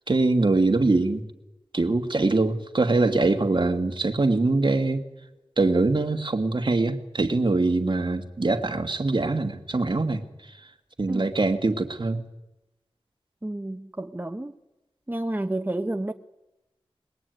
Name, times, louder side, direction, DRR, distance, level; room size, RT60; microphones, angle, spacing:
voice 1, 0.1-1.2 1.7-5.0 5.6-10.2 11.0-12.2, right 3 dB, 55° right, 2.3 m, -23 dB
voice 2, 13.4-14.6 15.1-16.1, right 1 dB, 20° right, 1.1 m, -30 dB
22.0 x 21.5 x 9.4 m
wide cardioid pair, 65°, 10 cm